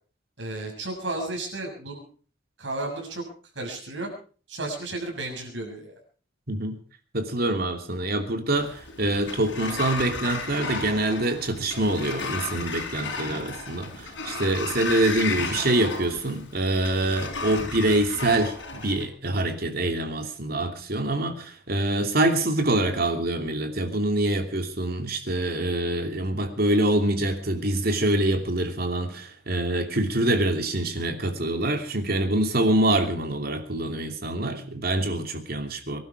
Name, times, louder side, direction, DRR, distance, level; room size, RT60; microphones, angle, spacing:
voice 1, 0.4-2.0 2.6-3.2 3.6-4.1 4.5-5.9, right 2 dB, 70° right, 1 dB, 6.9 m, -33 dB
voice 2, 6.5-6.8 7.1-36.0, right 1 dB, 55° right, 5 dB, 2.8 m, -25 dB
Sliding door, 8.5-19.1, left 4 dB, 70° left, 4.7 m, -34 dB
24.5 x 12.0 x 4.8 m, 0.41 s
head